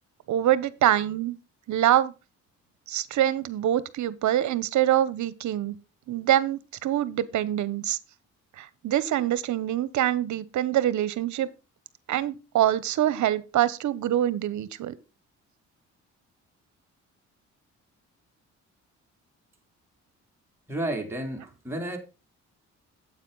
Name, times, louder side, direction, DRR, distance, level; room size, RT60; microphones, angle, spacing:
voice 1, 0.3-1.4 1.7-2.1 2.9-5.8 6.1-8.0 8.6-11.5 12.1-14.9, right 12 dB, 70° right, 1.0 m, -25 dB
voice 2, 20.7-22.0, right 1 dB, 10° right, 3.2 m, -31 dB
9.1 x 8.3 x 3.9 m
cardioid pair, 90°, 30 cm